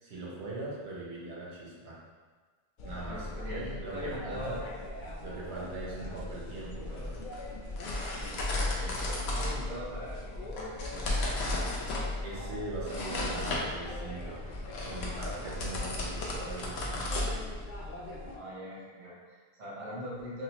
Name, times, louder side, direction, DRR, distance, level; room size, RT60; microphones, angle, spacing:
voice 1, 0.0-2.0 2.8-4.5 5.2-7.1 11.8-14.4 14.9-17.1, right 2 dB, 90° right, -5 dB, 1.1 m, -41 dB
sound 1, 2.8-18.4, left 1 dB, 55° left, 0.6 m, -42 dB
voice 2, 3.1-4.6 8.1-11.2 18.3-20.4, left 1 dB, 50° right, -6 dB, 0.9 m, -42 dB
sound 2, 6.7-17.9, left 2 dB, 75° left, 0.9 m, -35 dB
4.8 x 2.0 x 2.8 m, 1.4 s
omnidirectional pair, 1.1 m